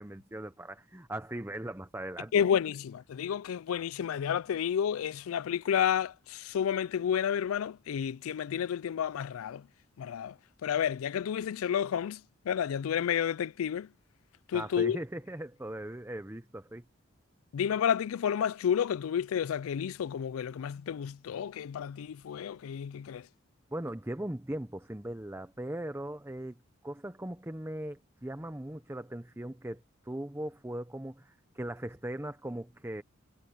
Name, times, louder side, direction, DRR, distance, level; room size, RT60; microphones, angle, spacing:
voice 1, 0.0-2.5 14.5-16.8 23.7-26.6 26.8-33.0, right 1 dB, 10° right, 0.8 m, -39 dB
voice 2, 2.3-9.6 10.0-10.3 10.6-12.2 12.5-13.9 14.5-15.0 17.5-23.2, left 8 dB, 85° left, 0.4 m, -30 dB
head